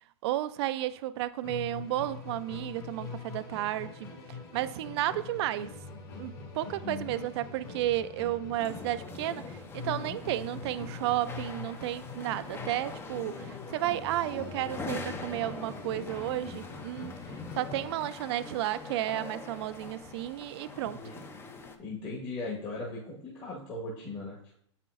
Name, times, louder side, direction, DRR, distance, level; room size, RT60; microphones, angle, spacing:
voice 1, 0.2-4.1 4.5-5.7 6.2-17.2 17.5-21.0, right 14 dB, 55° right, 0.4 m, -32 dB
Musical instrument, 1.4-18.1, left 4 dB, 50° left, 2.4 m, -44 dB
voice 2, 6.8-7.1 9.8-10.2 20.8-21.2 21.8-24.6, left 2 dB, 30° left, 1.4 m, -39 dB
sound 1, 8.6-21.8, left 4 dB, 15° left, 0.5 m, -43 dB
7.5 x 5.7 x 2.5 m
hypercardioid pair, 125°, 16 cm